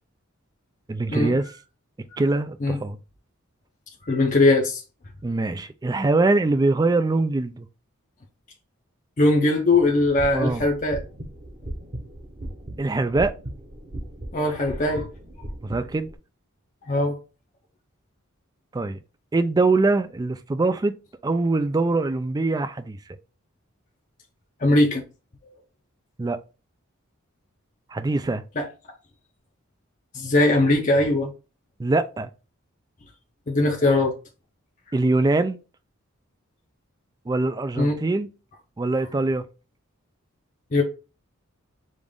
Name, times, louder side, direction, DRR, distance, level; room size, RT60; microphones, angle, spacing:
voice 1, 0.9-1.5 2.2-3.0 5.2-7.7 10.3-10.7 12.8-13.3 15.6-16.1 18.7-19.0 19.3-20.9 21.2-23.0 26.2-26.4 27.9-28.4 31.8-32.3 34.9-35.6 37.3-38.3 38.8-39.5, right 3 dB, 20° right, 0.3 m, -23 dB
voice 2, 4.0-4.8 9.2-11.0 14.3-15.1 16.9-17.1 24.6-25.0 28.6-28.7 30.1-31.3 33.5-34.1 37.8-38.0 40.7-40.8, left 2 dB, 35° left, 0.6 m, -20 dB
sound 1, 10.0-16.2, right 1 dB, 35° right, 0.9 m, -37 dB
5.1 x 2.5 x 3.6 m
head